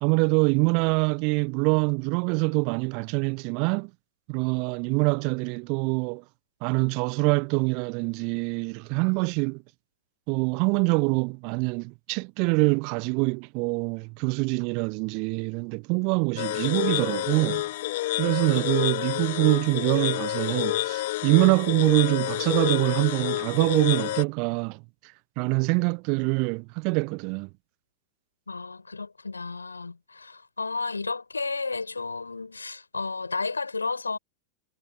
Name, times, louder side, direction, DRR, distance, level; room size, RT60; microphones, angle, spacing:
voice 1, 0.0-3.9 4.3-6.2 6.6-9.6 10.3-17.7 18.2-24.8 25.4-27.5, right 35 dB, 45° right, 0.6 m, -25 dB
sound 1, 16.4-24.2, left 16 dB, 55° left, 4.8 m, -29 dB
voice 2, 28.5-34.2, left 4 dB, 80° left, 4.5 m, -32 dB
figure-of-eight pair, 90°, 0 cm